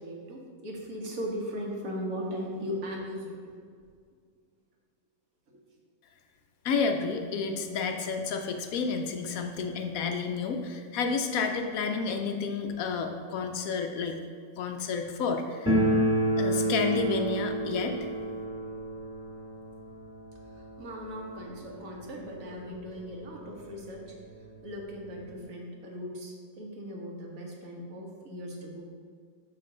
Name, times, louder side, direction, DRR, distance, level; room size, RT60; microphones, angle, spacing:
voice 1, 0.0-3.5 5.5-5.6 12.7-12.8 20.4-24.1 24.6-28.8, equal, 50° right, -1 dB, 1.4 m, -38 dB
voice 2, 6.6-14.2 14.6-15.7 16.4-17.9, left 5 dB, 70° left, 4 dB, 0.9 m, -30 dB
sound 1, 15.7-22.4 22.6-22.7 23.0-23.1 23.8-23.9 24.2-25.4, right 1 dB, 5° left, 1.6 m, -30 dB
6.8 x 5.5 x 3.8 m, 2.1 s
omnidirectional pair, 1.9 m